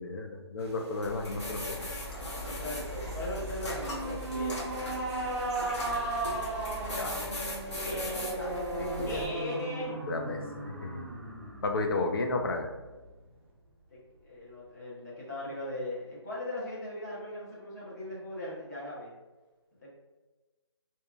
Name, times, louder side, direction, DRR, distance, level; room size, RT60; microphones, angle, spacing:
voice 1, 0.0-1.8 7.0-7.2 8.8-9.2 10.1-11.1 11.6-12.7, left 3 dB, 55° left, 5 dB, 0.4 m, -33 dB
sound 1, 0.6-8.1, right 2 dB, 70° right, 0.7 m, -51 dB
sound 2, 1.0-9.3, left 1 dB, 80° left, 0.9 m, -39 dB
voice 2, 2.4-4.6 7.7-8.6 9.0-10.0 13.9-19.1 19.8-19.9, left 1 dB, 40° left, -7 dB, 0.9 m, -39 dB
sound 3, 3.8-13.2, right 2 dB, 30° right, 0.5 m, -36 dB
2.7 x 2.2 x 2.4 m, 1.2 s
hypercardioid pair, 160°, 14 cm